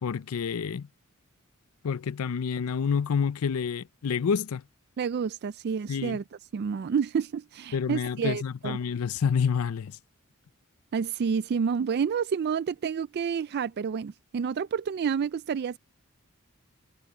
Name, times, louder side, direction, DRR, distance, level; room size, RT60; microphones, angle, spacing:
voice 1, 0.0-0.9 1.8-4.6 5.9-6.2 7.7-10.0, left 6 dB, 90° left, 0.5 m, -28 dB
voice 2, 5.0-6.2 6.5-8.8 10.9-15.8, right 6 dB, 50° right, 0.3 m, -29 dB
head